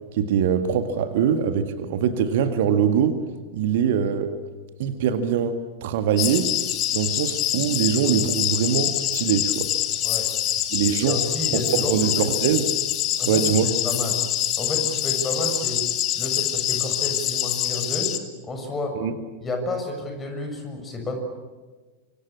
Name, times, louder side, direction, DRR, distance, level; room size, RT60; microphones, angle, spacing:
voice 1, 0.1-3.2 3.5-4.3 4.8-6.5 6.9-9.7 10.7-11.2 11.9-12.7 13.3-13.7 19.0-19.1, right 8 dB, 55° right, 9 dB, 1.9 m, -23 dB
sound 1, 6.2-18.2, left 12 dB, 35° left, 2.4 m, -25 dB
voice 2, 10.9-12.3 13.2-14.2 14.6-15.8 16.2-18.1 18.4-19.0 19.4-21.2, left 1 dB, 20° left, 5 dB, 6.9 m, -31 dB
25.5 x 24.5 x 8.7 m, 1.3 s
figure-of-eight pair, 90°, 0 cm